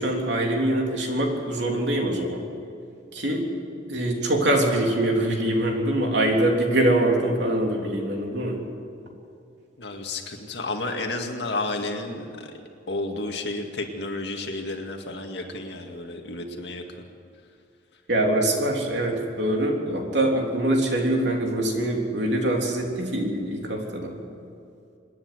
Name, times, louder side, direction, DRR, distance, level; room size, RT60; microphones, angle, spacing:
voice 1, 0.0-2.4 3.1-3.5 3.9-8.6 18.1-24.2, right 1 dB, 70° right, 1 dB, 3.4 m, -24 dB
voice 2, 9.8-12.5 12.9-16.8, left 2 dB, 65° left, 3 dB, 2.2 m, -31 dB
26.0 x 10.5 x 9.6 m, 2.5 s
head